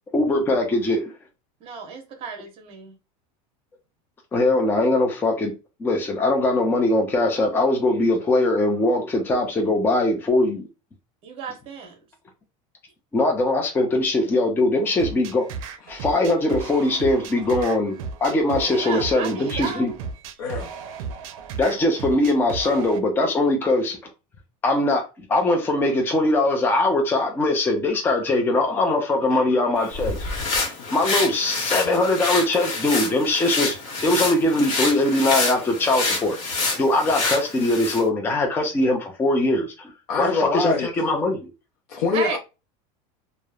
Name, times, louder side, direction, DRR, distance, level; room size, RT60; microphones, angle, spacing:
voice 1, 0.1-1.1 4.3-5.5 5.8-10.7 13.1-15.5 15.9-19.9 21.6-24.0 24.6-30.2 30.9-33.8 34.0-36.4 36.8-41.5, left 2 dB, 10° left, 0.4 m, -21 dB
voice 2, 1.6-2.9 11.2-12.0 18.7-19.9 42.0-42.4, right 5 dB, 35° right, 0.8 m, -33 dB
sound 1, 15.0-23.0, right 5 dB, 75° right, 0.5 m, -35 dB
voice 3, 20.4-20.8 29.3-29.9 30.2-30.3 31.8-31.9 40.1-40.9 41.9-42.4, left 4 dB, 80° left, 0.6 m, -27 dB
sound 2, 29.8-38.1, left 3 dB, 45° left, 1.0 m, -27 dB
3.0 x 2.0 x 2.3 m
supercardioid pair, 145°, 17 cm